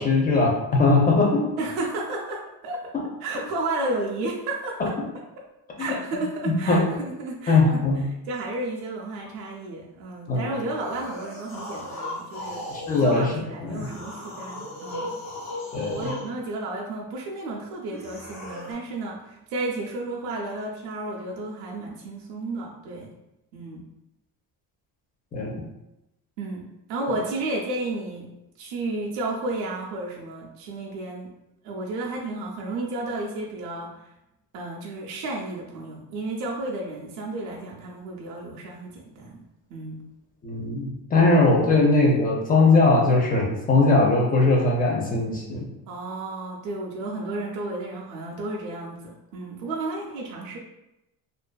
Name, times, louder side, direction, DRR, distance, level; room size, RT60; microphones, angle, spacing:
voice 1, 0.0-1.5 4.8-4.9 5.8-5.9 6.7-6.8 7.5-8.0 10.3-10.4 12.9-13.3 13.6-13.9 15.7-16.0 25.3-25.6 40.4-45.7, left 3 dB, 25° left, -1 dB, 0.5 m, -20 dB
voice 2, 1.6-2.9 3.2-5.2 5.8-7.8 8.3-12.7 13.0-15.1 15.9-23.1 23.5-23.9 26.4-28.3 28.6-31.3 31.6-33.9 34.5-39.4 39.7-40.0 45.9-50.6, right 2 dB, 85° right, -2 dB, 0.5 m, -32 dB
sound 1, 10.7-13.2 13.7-16.3 17.9-18.7, left 1 dB, 45° left, 1.2 m, -36 dB
2.5 x 2.3 x 2.2 m, 0.91 s
cardioid pair, 130°, 37 cm